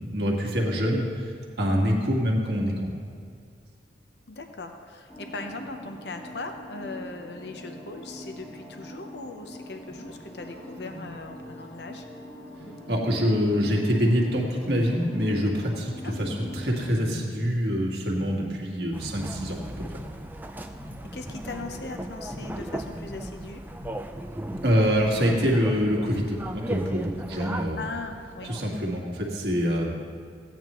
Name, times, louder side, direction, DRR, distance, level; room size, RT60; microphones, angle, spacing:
voice 1, 0.0-2.9 12.9-19.8 24.6-27.8 28.4-29.9, equal, 60° right, -1 dB, 1.8 m, -25 dB
voice 2, 4.3-12.0 16.0-16.1 21.1-23.6 27.3-28.5, left 3 dB, 65° left, 5 dB, 0.8 m, -39 dB
sound 1, 5.1-16.9, equal, 10° left, 1.4 m, -44 dB
Wild animals, 9.8-11.5 12.6-14.4 14.9-16.1 16.7-17.7 18.0-20.5 20.8-25.7 26.0-26.5 26.9-27.4 28.1-28.5, equal, 35° left, 1.2 m, -45 dB
sound 2, 18.9-28.7, right 1 dB, 10° right, 0.4 m, -37 dB
15.5 x 9.4 x 3.1 m, 2.2 s
head